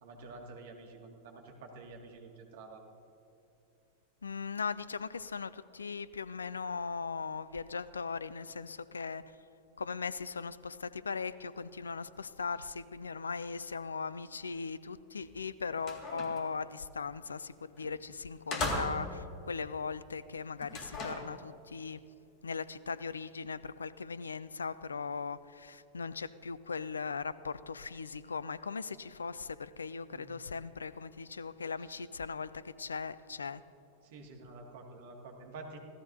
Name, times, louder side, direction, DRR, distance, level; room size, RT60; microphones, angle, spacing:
voice 1, 0.0-2.8 30.1-30.3 34.0-35.8, right 3 dB, 55° right, 2.1 m, -49 dB
voice 2, 4.2-9.2 9.8-22.0 22.4-33.6, left 5 dB, 75° left, 0.4 m, -39 dB
sound 1, 15.2-15.4 15.7-16.5 17.8-17.9 18.5-19.3 20.6-21.3, left 2 dB, 35° left, 2.1 m, -37 dB
25.5 x 16.5 x 2.7 m
figure-of-eight pair, 90°, 0 cm